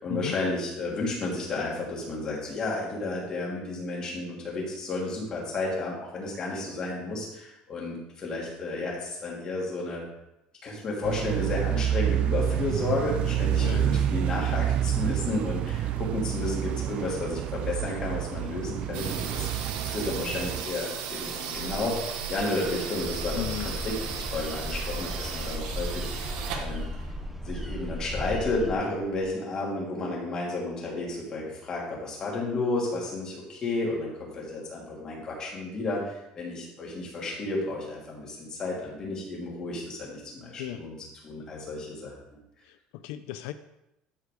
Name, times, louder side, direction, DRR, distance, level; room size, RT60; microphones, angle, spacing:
voice 1, 0.0-10.0 10.6-19.5 19.9-26.3 26.5-26.8 27.4-41.0 41.2-42.1, left 2 dB, 25° left, -4 dB, 3.0 m, -32 dB
sound 1, 11.0-20.6, right 11 dB, 45° right, 0.3 m, -28 dB
sound 2, 18.9-29.3, right 7 dB, 85° right, 1.4 m, -37 dB
sound 3, 23.0-28.7, equal, 5° right, 0.7 m, -35 dB
voice 2, 23.4-23.7 40.6-40.8 42.6-43.5, left 14 dB, 85° left, 10 dB, 0.5 m, -35 dB
13.0 x 4.9 x 5.0 m, 0.87 s
cardioid pair, 170°, 3 cm